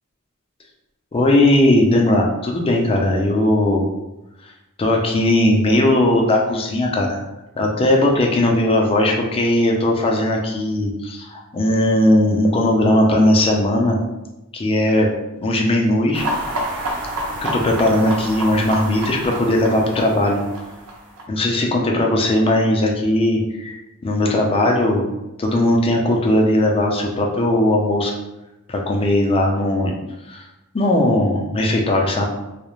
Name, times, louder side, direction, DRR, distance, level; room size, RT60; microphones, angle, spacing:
voice 1, 1.1-3.8 4.8-7.2 7.6-14.0 14.5-15.1 15.4-16.3 17.5-20.4 21.3-23.8 24.0-25.0 25.4-28.1 28.7-29.9 30.3-30.5 30.7-32.3, left 1 dB, 25° left, 0 dB, 0.4 m, -18 dB
sound 1, 16.1-21.2, right 1 dB, 70° right, 0.5 m, -28 dB
2.4 x 2.0 x 2.9 m, 0.97 s
head